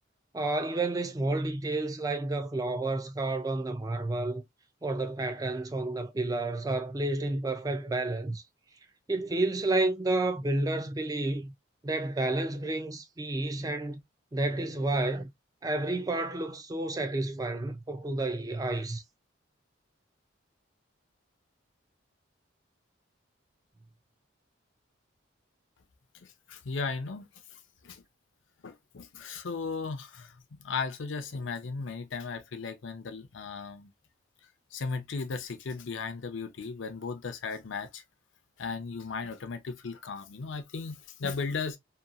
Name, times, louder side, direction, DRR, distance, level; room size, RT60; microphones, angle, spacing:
voice 1, 0.3-4.4 4.8-8.4 9.1-11.5 11.8-14.0 14.3-15.3 15.6-19.0, right 2 dB, 20° right, 0.3 m, -30 dB
voice 2, 26.1-28.0 28.6-33.9 34.7-38.0 38.6-41.8, left 4 dB, 75° left, 0.5 m, -36 dB
2.8 x 2.2 x 2.4 m
head